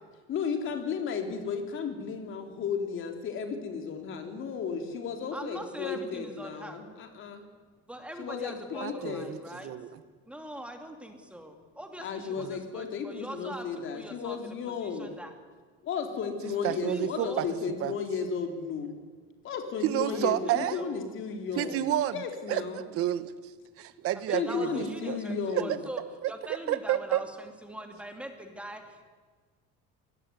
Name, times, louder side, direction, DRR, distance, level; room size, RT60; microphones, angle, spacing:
voice 1, 0.3-7.4 8.2-9.3 12.0-15.1 15.8-18.9 19.4-21.9 22.1-22.8 24.3-25.8, left 5 dB, 40° left, 5 dB, 3.9 m, -34 dB
voice 2, 5.3-6.8 7.9-9.7 10.3-13.7 13.9-14.4 14.8-15.3 16.7-17.4 20.1-20.4 20.7-21.1 24.3-26.0 26.3-29.0, equal, 5° right, 5 dB, 2.7 m, -42 dB
voice 3, 8.8-9.2 9.6-10.0 12.4-12.5 16.6-17.4 17.8-17.9 19.8-20.8 21.6-22.2 22.5-23.3 23.8-25.2 25.5-25.6 26.2-27.2, right 13 dB, 50° right, 13 dB, 1.5 m, -30 dB
23.5 x 19.0 x 9.8 m, 1.5 s
cardioid pair, 155°, 30 cm